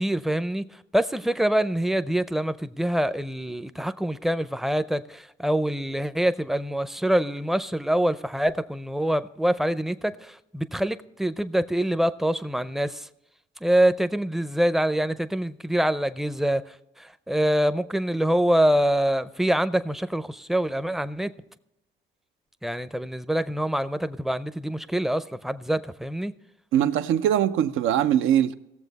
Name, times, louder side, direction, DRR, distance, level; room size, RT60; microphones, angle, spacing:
voice 1, 0.0-13.1 13.6-21.3 22.6-26.3, right 1 dB, ahead, 0.5 m, -25 dB
voice 2, 26.7-28.5, right 10 dB, 85° right, 0.6 m, -21 dB
17.5 x 7.1 x 4.0 m
cardioid pair, 90°, 20 cm